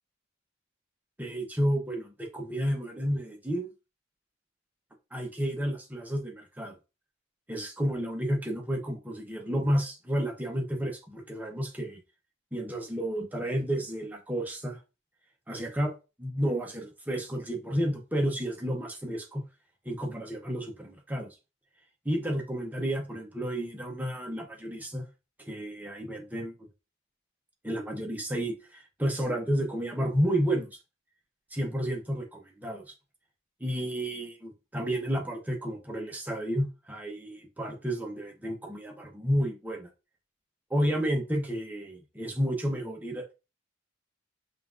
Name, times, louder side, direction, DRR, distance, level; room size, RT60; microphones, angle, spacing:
voice 1, 1.2-3.7 5.1-6.8 7.5-12.0 12.5-14.8 15.5-15.9 16.2-19.4 19.8-21.4 22.0-25.1 25.5-26.5 27.6-30.8 31.5-32.9 33.6-39.9 40.7-43.3, equal, 10° right, 0.6 m, -31 dB
5.5 x 2.4 x 2.4 m
head